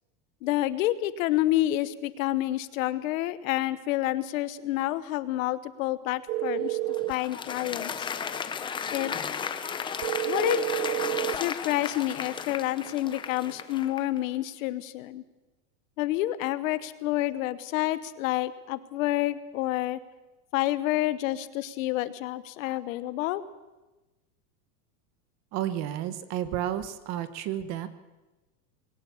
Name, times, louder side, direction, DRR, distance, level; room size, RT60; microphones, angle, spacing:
voice 1, 0.4-6.8 7.1-8.1 8.9-9.1 10.2-10.6 11.3-15.2 16.0-20.0 20.5-23.4, left 15 dB, 60° left, 15 dB, 1.2 m, -28 dB
sound 1, 6.3-7.2 10.0-11.4, right 18 dB, 85° right, 0.7 m, -29 dB
Applause, 6.6-14.2, left 7 dB, 10° left, 0.6 m, -34 dB
voice 2, 25.5-27.9, right 11 dB, 35° right, 13 dB, 1.2 m, -31 dB
21.5 x 18.0 x 7.2 m, 1.1 s
supercardioid pair, 160°, 44 cm